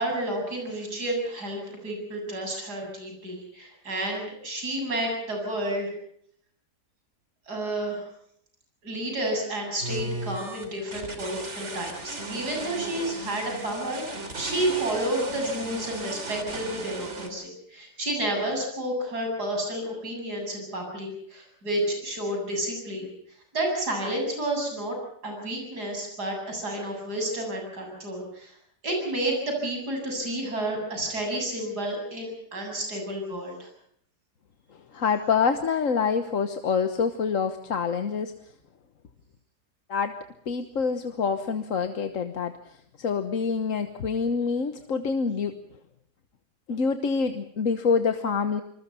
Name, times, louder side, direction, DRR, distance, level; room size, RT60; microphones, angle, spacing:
voice 1, 0.0-5.9 7.5-8.1 8.8-23.1 23.5-25.0 25.2-28.5 28.8-33.7, right 1 dB, 70° right, 2 dB, 8.4 m, -30 dB
sound 1, 9.8-17.3, right 2 dB, 45° right, 3.4 m, -36 dB
voice 2, 34.7-38.3 39.9-40.1 40.5-45.6 46.7-48.6, left 5 dB, 55° left, 8 dB, 1.5 m, -26 dB
28.0 x 21.0 x 5.7 m, 0.67 s
omnidirectional pair, 1.8 m